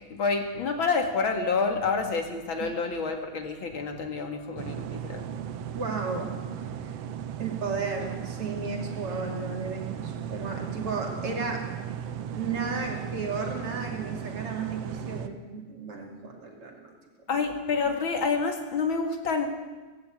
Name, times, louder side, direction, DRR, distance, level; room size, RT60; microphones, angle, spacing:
voice 1, 0.1-5.2 17.3-19.5, left 4 dB, 45° left, 4 dB, 2.6 m, -28 dB
sound 1, 4.6-15.3, right 9 dB, 65° right, 1.7 m, -36 dB
voice 2, 5.7-6.3 6.8-6.9 7.4-11.6 12.3-16.9, right 4 dB, 50° right, 1 dB, 3.6 m, -34 dB
18.5 x 16.5 x 8.7 m, 1.2 s
omnidirectional pair, 3.5 m